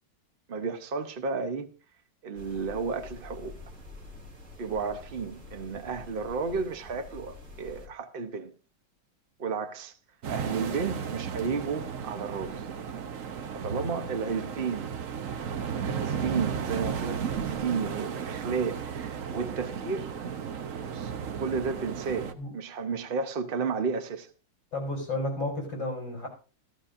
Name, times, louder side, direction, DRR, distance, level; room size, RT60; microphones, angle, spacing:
voice 1, 0.5-1.7 2.2-3.6 4.6-8.5 9.4-10.0 10.3-12.7 13.5-14.9 15.7-20.1 20.7-24.3, right 5 dB, 80° right, 0.5 m, -32 dB
sound 1, 2.3-7.9, left 2 dB, 35° right, 3.3 m, -47 dB
sound 2, 10.2-22.3, right 7 dB, 60° right, 0.9 m, -34 dB
voice 2, 24.7-26.3, left 2 dB, 60° left, 5.2 m, -32 dB
14.5 x 14.0 x 2.5 m
omnidirectional pair, 2.3 m